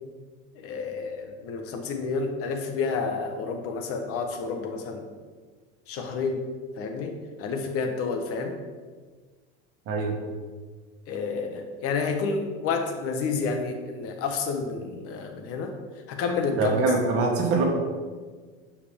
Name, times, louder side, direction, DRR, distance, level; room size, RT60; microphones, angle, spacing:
voice 1, 0.6-5.0 5.9-6.4 6.8-8.5 11.1-15.7 16.1-16.8, left 4 dB, 50° left, 5 dB, 1.1 m, -30 dB
voice 2, 9.9-10.2 16.6-17.7, right 3 dB, 45° right, 1 dB, 1.7 m, -23 dB
11.5 x 4.9 x 3.6 m, 1.5 s
supercardioid pair, 140°, 31 cm